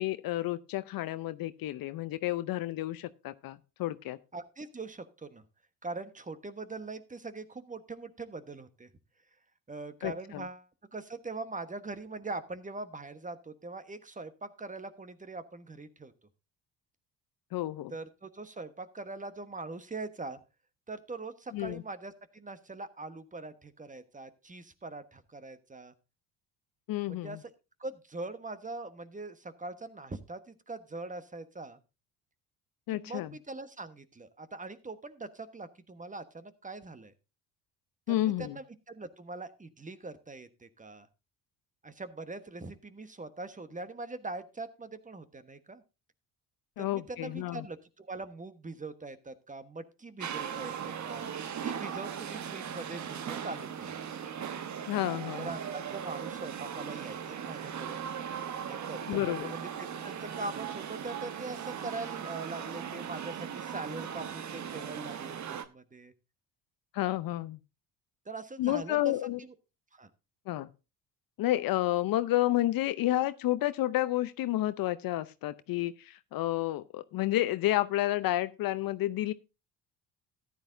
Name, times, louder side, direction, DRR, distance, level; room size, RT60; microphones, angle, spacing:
voice 1, 0.0-4.2 10.0-10.4 17.5-17.9 21.5-21.8 26.9-27.4 32.9-33.3 38.1-38.6 46.8-47.7 54.9-55.5 59.1-59.5 66.9-67.6 68.6-69.4 70.5-70.7 71.4-79.3, left 15 dB, 55° left, 0.7 m, -30 dB
voice 2, 4.3-5.4 5.8-8.9 9.7-16.1 17.9-20.4 20.9-25.9 27.1-27.5 27.8-31.8 32.9-37.1 38.1-41.1 41.8-45.8 46.8-51.3 51.6-54.0 55.4-58.0 58.7-66.1 68.2-69.1 69.4-69.5 69.9-70.1, right 3 dB, 20° right, 1.2 m, -42 dB
sound 1, 50.2-65.7, right 8 dB, 40° right, 1.1 m, -38 dB
14.0 x 10.5 x 2.6 m
hypercardioid pair, 65°, 42 cm